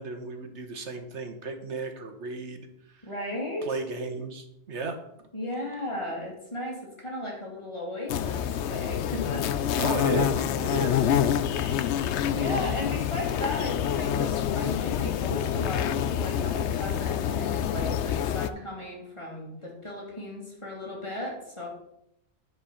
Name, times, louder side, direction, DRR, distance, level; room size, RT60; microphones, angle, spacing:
voice 1, 0.0-3.0 3.6-5.0 9.8-11.1 11.5-11.7 12.5-12.6, right 3 dB, 75° right, 6 dB, 1.6 m, -34 dB
voice 2, 3.0-3.8 5.3-9.5 9.8-9.9 10.6-10.7 11.5-21.7, left 1 dB, 25° left, -3 dB, 3.0 m, -36 dB
sound 1, 8.1-18.5, left 9 dB, 80° left, 0.9 m, -27 dB
9.9 x 5.0 x 6.4 m, 0.78 s
omnidirectional pair, 1.2 m